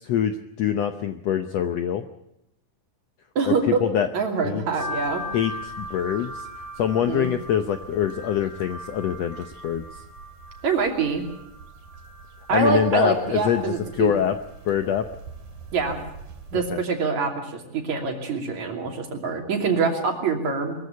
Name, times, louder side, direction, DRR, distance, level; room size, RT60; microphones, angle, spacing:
voice 1, 0.0-2.0 3.5-4.1 4.4-4.6 5.3-6.4 6.8-9.8 12.5-14.4 14.7-15.0 16.7-16.8, left 9 dB, 70° left, 9 dB, 1.6 m, -24 dB
voice 2, 3.4-3.8 4.1-5.2 6.9-7.3 10.6-11.2 12.5-14.1 15.7-16.0 16.5-20.9, right 4 dB, 55° right, 4 dB, 4.0 m, -25 dB
sound 1, 4.8-16.7, equal, 75° right, 4.7 m, -40 dB
22.5 x 14.5 x 8.4 m, 0.84 s
omnidirectional pair, 3.9 m